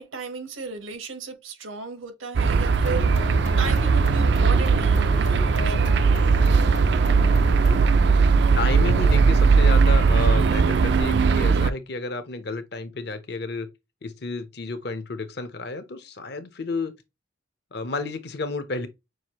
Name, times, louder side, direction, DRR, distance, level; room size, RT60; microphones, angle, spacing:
voice 1, 0.0-6.4, right 4 dB, 90° right, 1.2 m, -35 dB
sound 1, 2.3-11.7, right 4 dB, 55° right, 0.3 m, -19 dB
sound 2, 2.8-7.9, left 2 dB, 70° left, 1.6 m, -36 dB
voice 2, 8.5-13.7 14.0-16.9 17.7-18.9, left 3 dB, 55° left, 0.7 m, -31 dB
6.2 x 2.5 x 2.9 m
head